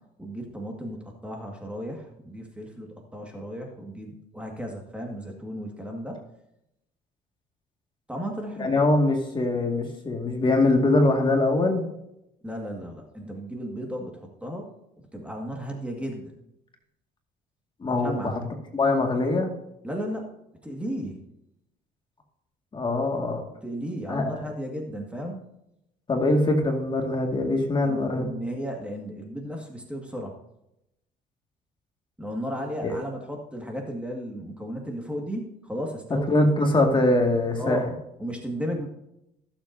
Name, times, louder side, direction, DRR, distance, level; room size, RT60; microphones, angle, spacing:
voice 1, 0.2-2.9 3.1-6.2 8.1-8.7 12.4-14.7 15.1-16.3 18.0-18.3 19.8-20.3 20.6-21.2 23.6-25.4 27.8-30.4 32.2-36.5 37.6-37.8 38.2-38.9, equal, 5° right, 1 dB, 1.8 m, -34 dB
voice 2, 8.6-11.9 17.8-18.4 18.7-19.5 22.7-23.4 24.1-24.3 26.1-28.3 32.8-32.9 36.3-37.8, left 2 dB, 30° left, 2 dB, 2.0 m, -23 dB
17.5 x 7.3 x 2.7 m, 0.83 s
cardioid pair, 110°, 17 cm